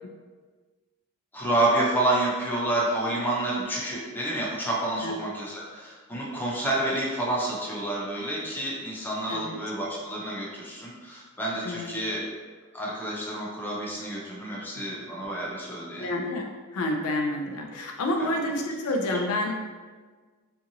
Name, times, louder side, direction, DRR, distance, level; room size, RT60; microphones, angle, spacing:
voice 1, 1.3-12.2 12.7-16.1 18.2-18.4, right 1 dB, 10° left, -5 dB, 0.5 m, -29 dB
voice 2, 16.0-19.5, left 1 dB, 85° left, 2 dB, 0.4 m, -29 dB
2.8 x 2.5 x 2.6 m, 1.4 s
head